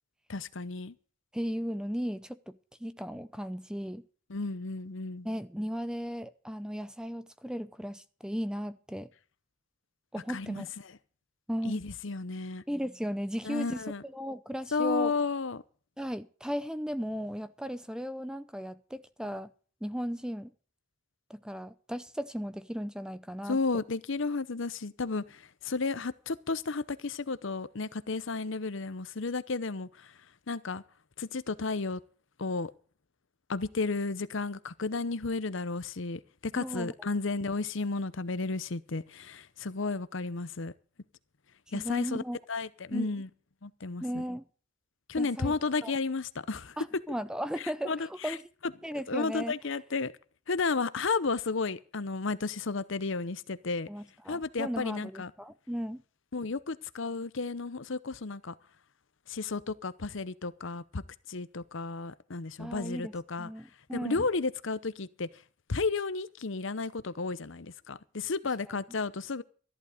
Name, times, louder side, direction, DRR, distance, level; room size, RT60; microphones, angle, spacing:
voice 1, 0.3-1.0 4.3-5.3 10.3-10.7 11.6-12.6 13.4-14.0 14.7-15.6 23.5-30.2 30.5-30.8 31.2-32.0 32.4-32.7 33.5-40.7 41.7-42.2 42.5-43.3 43.6-44.2 45.1-46.8 47.6-48.4 49.1-50.1 50.5-53.9 54.3-55.3 56.3-58.5 59.3-61.0 61.3-63.5 63.9-65.4 65.7-69.4, left 4 dB, 65° left, 0.8 m, -33 dB
voice 2, 1.3-4.0 5.2-9.1 10.1-10.7 11.5-11.8 12.7-15.1 16.0-19.5 19.8-20.5 21.3-23.8 36.6-36.9 41.7-42.4 42.9-43.1 44.0-44.4 45.2-45.5 45.8-45.9 46.8-48.4 48.8-49.5 53.9-56.0 62.6-63.1 63.4-64.2, equal, 5° right, 0.6 m, -36 dB
14.0 x 11.0 x 5.0 m
head